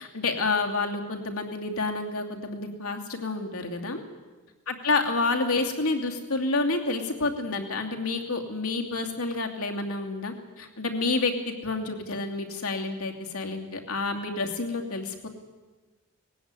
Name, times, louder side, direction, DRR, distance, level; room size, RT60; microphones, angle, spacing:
voice 1, 0.0-4.0 4.7-15.3, left 3 dB, 75° left, 3 dB, 2.7 m, -29 dB
19.5 x 16.0 x 9.7 m, 1.3 s
head